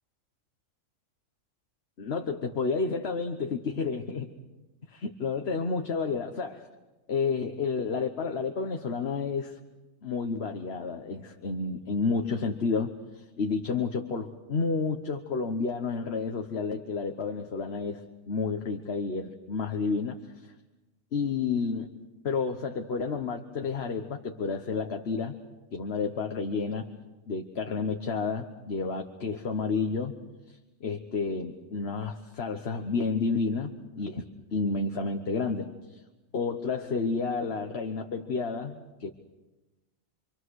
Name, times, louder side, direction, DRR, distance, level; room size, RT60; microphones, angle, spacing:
voice 1, 2.0-4.3 4.9-6.7 7.1-9.6 10.0-20.5 21.1-21.9 22.2-25.4 25.7-26.9 27.3-30.1 30.5-34.2 34.5-36.0 36.3-39.1, left 4 dB, 50° left, 5 dB, 1.4 m, -30 dB
26.5 x 26.5 x 6.4 m, 1.1 s
omnidirectional pair, 1.4 m